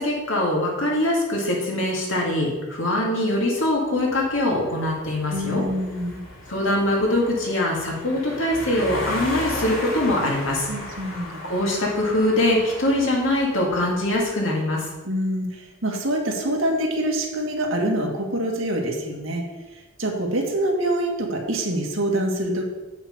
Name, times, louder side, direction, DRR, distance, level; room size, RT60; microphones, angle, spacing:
voice 1, 0.0-5.6 6.5-10.7 11.4-14.9, left 1 dB, 65° left, -2 dB, 2.2 m, -23 dB
sound 1, 3.9-14.2, left 1 dB, 85° left, 2.6 m, -36 dB
voice 2, 5.3-6.2 10.7-11.4 15.0-19.4 19.7-22.7, right 1 dB, 70° right, 1 dB, 1.7 m, -25 dB
8.2 x 5.8 x 5.4 m, 1.1 s
head